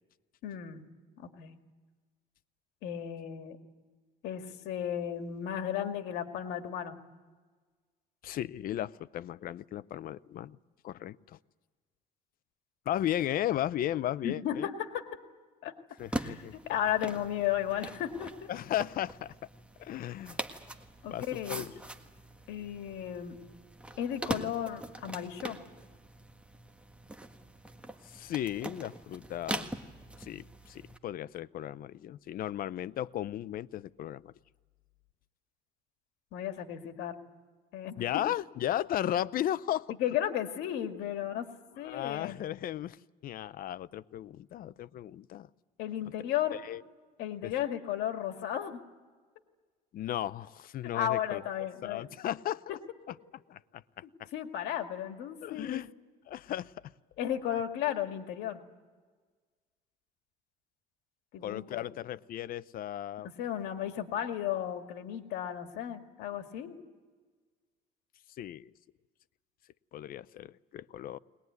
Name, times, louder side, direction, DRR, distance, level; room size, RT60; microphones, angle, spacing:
voice 1, 0.4-0.8 1.2-1.6 2.8-3.6 4.2-7.0 14.2-15.0 15.6-15.7 16.1-18.5 21.0-21.6 22.5-23.4 24.0-25.6 36.3-37.1 37.7-38.0 40.0-41.5 41.8-42.4 45.8-46.6 47.2-48.8 50.9-52.1 52.7-52.8 54.0-55.8 57.2-58.6 61.3-61.9 63.2-66.8, left 10 dB, 90° left, 6 dB, 2.0 m, -34 dB
voice 2, 8.2-10.6 10.8-11.4 12.9-14.7 16.0-16.5 18.5-19.3 19.8-20.4 21.1-21.7 28.0-29.6 30.2-34.3 38.0-40.0 41.8-43.0 43.2-45.5 46.5-46.8 47.4-47.5 49.9-51.4 51.8-52.8 53.1-53.2 53.5-53.8 54.2-54.3 55.4-55.9 56.3-56.9 61.4-63.3 68.4-68.7 69.9-71.2, left 12 dB, 60° left, 17 dB, 0.6 m, -35 dB
sound 1, 16.0-31.0, right 1 dB, 5° right, 1.6 m, -42 dB
21.5 x 20.5 x 9.5 m, 1.4 s
cardioid pair, 110°, 17 cm